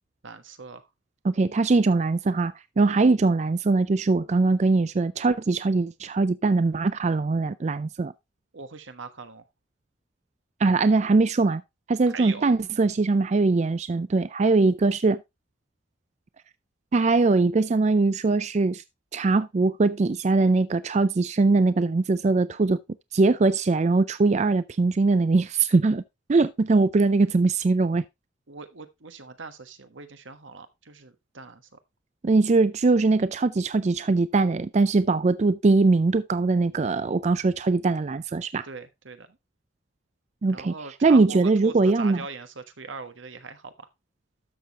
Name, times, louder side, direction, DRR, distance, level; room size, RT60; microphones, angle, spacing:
voice 1, 0.2-0.9 8.5-9.4 12.1-12.5 28.5-31.8 38.6-39.4 40.5-43.9, right 4 dB, 90° right, 1.3 m, -41 dB
voice 2, 1.2-8.1 10.6-11.6 11.9-15.2 16.9-18.8 19.1-22.8 23.1-26.0 26.3-28.0 32.2-38.7 40.4-40.7 41.0-42.2, right 3 dB, 35° right, 0.4 m, -21 dB
12.5 x 6.5 x 2.9 m
head